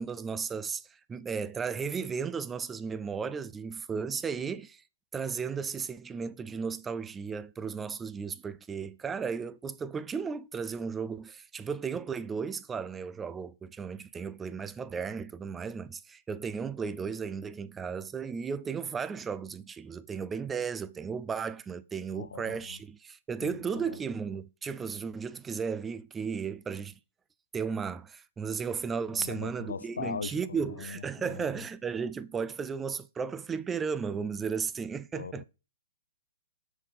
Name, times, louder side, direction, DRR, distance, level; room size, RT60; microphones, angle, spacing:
voice 1, 0.0-4.8 5.1-26.9 27.5-35.4, right 6 dB, 15° right, 0.5 m, -35 dB
voice 2, 22.1-22.8 23.4-24.0 29.1-31.7 35.1-35.4, left 6 dB, 75° left, 0.4 m, -40 dB
6.4 x 5.2 x 5.6 m
figure-of-eight pair, 120°, 0 cm